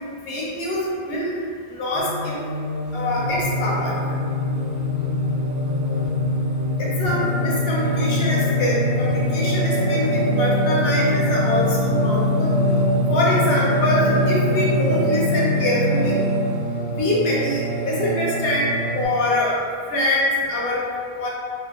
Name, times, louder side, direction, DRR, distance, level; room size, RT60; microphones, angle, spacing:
voice 1, 0.3-0.8 1.1-1.4 1.7-2.4 2.9-3.9 6.8-12.5 13.1-16.2 17.0-19.6 19.9-20.8 21.2-21.3, left 1 dB, 75° left, -5 dB, 0.8 m, -24 dB
Singing, 1.9-19.0, equal, 25° right, 0.6 m, -22 dB
2.1 x 2.0 x 2.8 m, 2.2 s
omnidirectional pair, 1.0 m